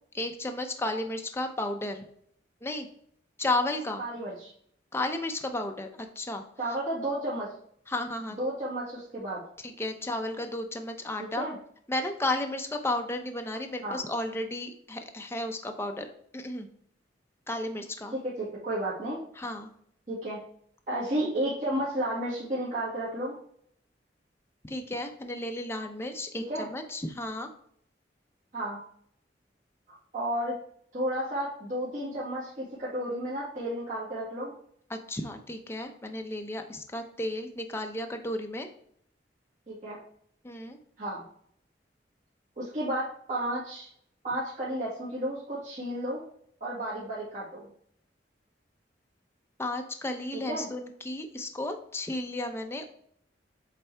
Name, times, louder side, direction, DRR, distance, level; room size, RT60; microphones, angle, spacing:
voice 1, 0.1-2.1 2.6-2.9 3.4-4.0 4.9-6.4 7.9-8.4 9.6-11.5 11.9-16.1 16.3-16.7 17.5-18.2 19.4-19.7 24.6-27.5 34.9-38.7 40.4-40.8 49.6-52.9, left 2 dB, 15° left, 5 dB, 0.6 m, -33 dB
voice 2, 4.0-4.5 6.6-7.5 8.4-9.4 11.4-11.6 13.8-14.0 18.1-19.2 20.1-20.4 20.9-23.4 26.5-26.6 28.5-28.8 30.1-30.6 30.9-34.5 39.7-40.0 41.0-41.2 42.6-43.9 44.2-46.2 46.6-47.7 50.5-50.7, right 1 dB, 45° right, -9 dB, 2.0 m, -32 dB
7.8 x 3.3 x 4.5 m, 0.64 s
head